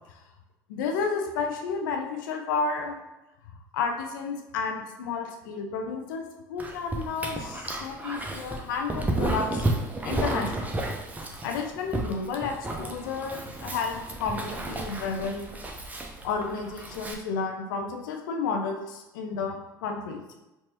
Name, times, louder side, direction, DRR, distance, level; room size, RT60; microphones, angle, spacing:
voice 1, 0.7-3.0 3.7-9.7 10.0-10.8 11.4-15.5 16.2-20.2, left 5 dB, 65° left, 3 dB, 0.6 m, -31 dB
Dog, 6.6-17.1, right 2 dB, 15° right, 0.6 m, -32 dB
4.6 x 2.7 x 2.8 m, 0.98 s
figure-of-eight pair, 70°, 11 cm